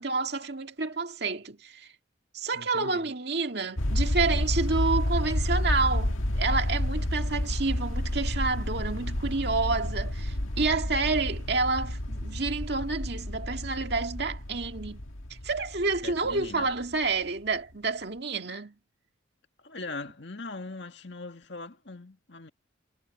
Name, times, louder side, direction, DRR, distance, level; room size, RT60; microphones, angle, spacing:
voice 1, 0.0-1.9 2.3-15.0 15.3-18.8, right 3 dB, 55° right, 2.1 m, -29 dB
voice 2, 2.5-3.1 16.0-16.7 19.6-22.5, left 3 dB, 60° left, 2.1 m, -40 dB
sound 1, 3.8-17.1, left 1 dB, 85° left, 2.0 m, -30 dB
head